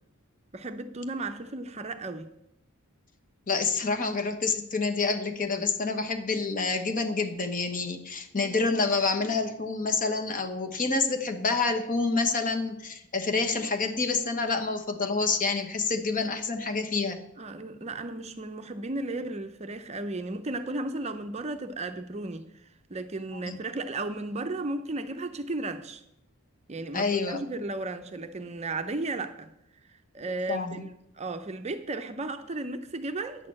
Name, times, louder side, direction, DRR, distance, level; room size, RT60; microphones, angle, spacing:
voice 1, 0.5-2.3 17.4-22.4 22.9-26.0 26.7-29.5 29.9-33.5, right 2 dB, 30° right, 0.6 m, -34 dB
voice 2, 3.5-17.2 23.3-23.6 26.9-27.4 30.5-30.8, left 4 dB, 35° left, 1.0 m, -28 dB
9.6 x 6.6 x 7.4 m
head